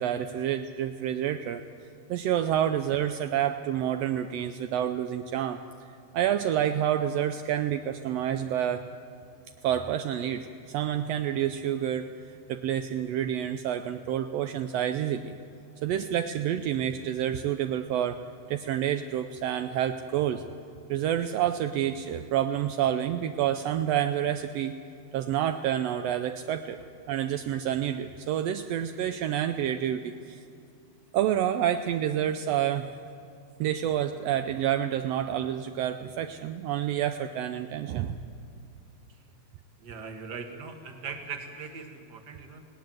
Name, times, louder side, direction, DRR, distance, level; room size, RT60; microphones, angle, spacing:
voice 1, 0.0-1.6 2.1-5.6 6.1-8.8 9.6-12.1 12.5-15.3 15.8-18.2 18.5-20.4 20.9-24.7 25.1-26.8 27.1-30.4 31.1-32.9 33.6-38.2, right 10 dB, 80° right, 8 dB, 1.5 m, -28 dB
voice 2, 39.8-42.6, right 5 dB, 40° right, 5 dB, 1.9 m, -40 dB
20.0 x 18.0 x 7.8 m, 2.6 s
omnidirectional pair, 3.5 m